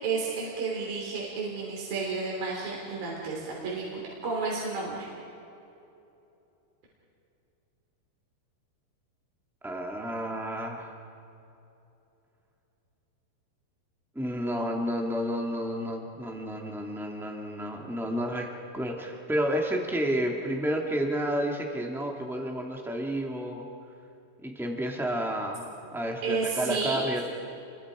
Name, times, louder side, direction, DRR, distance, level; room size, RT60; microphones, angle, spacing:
voice 1, 0.0-5.1 26.2-27.0, right 4 dB, 60° right, -4 dB, 5.2 m, -31 dB
voice 2, 9.6-11.0 14.1-18.5 18.7-23.6 24.4-27.2, equal, ahead, 1 dB, 0.7 m, -31 dB
30.0 x 23.5 x 5.0 m, 2.8 s
omnidirectional pair, 4.7 m